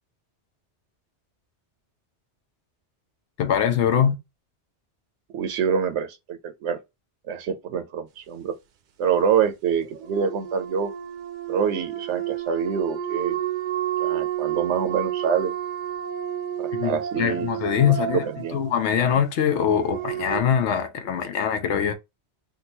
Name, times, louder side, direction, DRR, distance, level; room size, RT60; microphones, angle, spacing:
voice 1, 3.4-4.2 16.7-18.3 18.5-21.9, left 8 dB, 90° left, 0.9 m, -23 dB
voice 2, 5.3-6.8 7.3-8.5 9.0-10.9 11.5-13.4 14.0-15.5 16.6-18.6, right 7 dB, 85° right, 0.9 m, -26 dB
sound 1, 9.8-20.4, right 10 dB, 60° right, 0.6 m, -31 dB
3.8 x 2.2 x 2.7 m
omnidirectional pair, 1.2 m